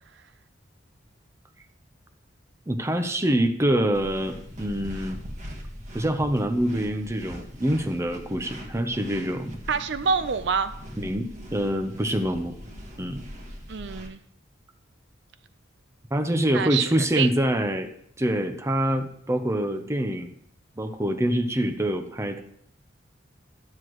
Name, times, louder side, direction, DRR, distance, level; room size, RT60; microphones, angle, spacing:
voice 1, 2.7-5.2 5.9-9.6 11.0-12.6 13.0-13.3 16.1-17.9 18.2-20.3 20.8-22.4, right 1 dB, 15° right, 7 dB, 0.7 m, -25 dB
sound 1, 3.9-14.1, equal, 40° right, 1.5 m, -41 dB
voice 2, 9.7-10.7 13.7-14.2 16.5-17.3, right 6 dB, 65° right, 12 dB, 0.6 m, -26 dB
12.5 x 7.8 x 3.0 m, 0.68 s
head